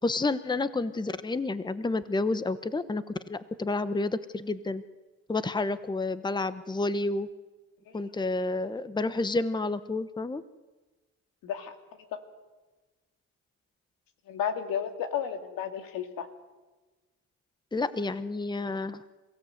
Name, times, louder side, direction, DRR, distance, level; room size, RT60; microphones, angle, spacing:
voice 1, 0.0-4.8 5.3-7.3 7.9-10.4 17.7-19.0, left 3 dB, 15° left, 13 dB, 1.0 m, -30 dB
voice 2, 11.4-11.8 14.3-16.3, left 8 dB, 85° left, 6 dB, 2.4 m, -32 dB
28.5 x 16.5 x 8.0 m, 1.2 s
cardioid pair, 85°, 33 cm